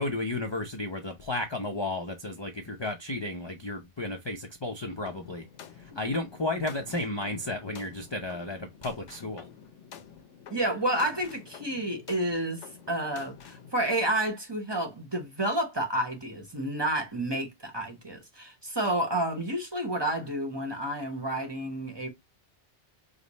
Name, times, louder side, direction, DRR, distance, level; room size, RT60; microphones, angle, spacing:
voice 1, 0.0-5.4 5.8-9.5, left 2 dB, 35° left, 0.4 m, -33 dB
sound 1, 5.1-13.7, left 8 dB, 80° left, 1.0 m, -49 dB
voice 2, 10.5-22.1, right 1 dB, 25° right, 0.9 m, -30 dB
5.1 x 2.0 x 4.0 m
omnidirectional pair, 1.2 m